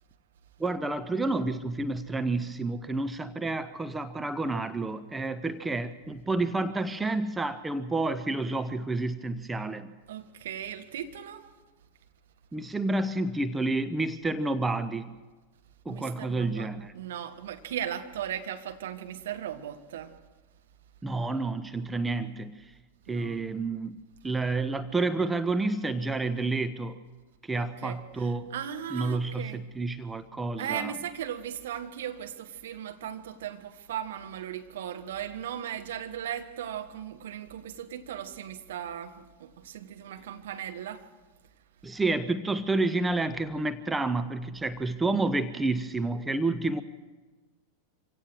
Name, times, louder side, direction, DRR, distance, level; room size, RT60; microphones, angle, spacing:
voice 1, 0.6-9.9 12.5-15.1 15.8-16.9 21.0-22.7 23.1-24.0 24.2-27.0 27.4-28.5 28.9-30.9 41.8-46.8, right 2 dB, 10° right, 0.8 m, -29 dB
voice 2, 10.1-11.5 15.9-16.7 16.9-20.1 23.1-23.4 27.5-29.6 30.6-41.1, right 10 dB, 60° right, 1.5 m, -37 dB
25.5 x 17.0 x 6.4 m
figure-of-eight pair, 90°, 0 cm